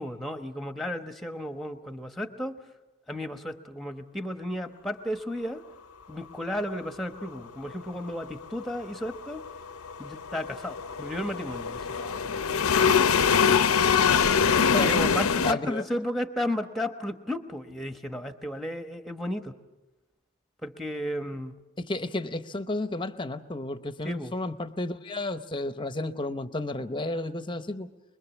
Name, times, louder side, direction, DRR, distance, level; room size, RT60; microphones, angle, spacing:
voice 1, 0.0-2.6 3.1-5.6 6.1-9.4 10.0-13.1 14.8-19.5 20.6-21.5 24.0-24.3, left 1 dB, ahead, 7 dB, 1.0 m, -34 dB
sound 1, 8.6-15.5, left 6 dB, 85° left, 0.7 m, -24 dB
voice 2, 14.7-15.1 15.4-15.8 21.8-27.9, left 2 dB, 20° left, 11 dB, 0.8 m, -32 dB
24.5 x 22.0 x 7.2 m, 1.1 s
head